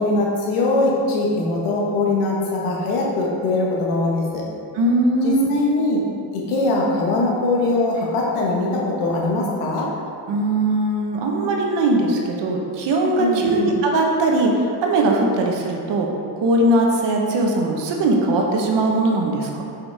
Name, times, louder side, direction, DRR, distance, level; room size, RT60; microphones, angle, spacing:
voice 1, 0.0-4.4 5.2-6.0 6.3-9.9 13.2-13.7, left 2 dB, 85° left, -2 dB, 1.5 m, -21 dB
voice 2, 4.7-5.5 10.3-16.1 16.4-19.6, right 2 dB, 60° right, 1 dB, 1.2 m, -20 dB
6.9 x 5.6 x 3.5 m, 2.5 s
supercardioid pair, 85°, 49 cm